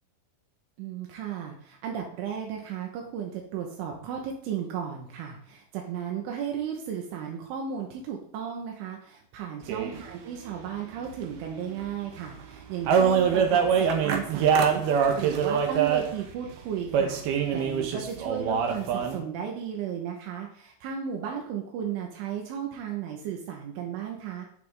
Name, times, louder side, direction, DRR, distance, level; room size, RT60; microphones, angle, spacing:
voice 1, 0.8-24.5, right 8 dB, 80° right, 1 dB, 3.9 m, -35 dB
sound 1, 9.7-10.0 11.8-11.9 12.1-12.2 12.5-12.6 12.8-16.3 16.9-19.2, right 7 dB, 65° right, 2.8 m, -24 dB
12.0 x 10.5 x 3.8 m, 0.63 s
omnidirectional pair, 5.6 m